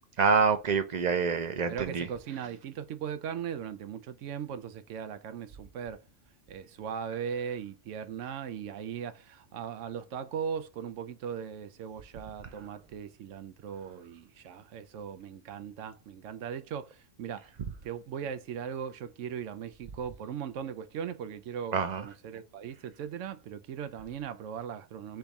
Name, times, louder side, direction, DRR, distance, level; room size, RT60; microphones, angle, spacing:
voice 1, 0.2-2.1 21.7-22.0, right 5 dB, 50° right, 0.6 m, -26 dB
voice 2, 1.7-6.0 6.5-17.5 17.8-25.2, right 7 dB, 90° right, 1.0 m, -38 dB
3.5 x 3.5 x 4.1 m
omnidirectional pair, 1.3 m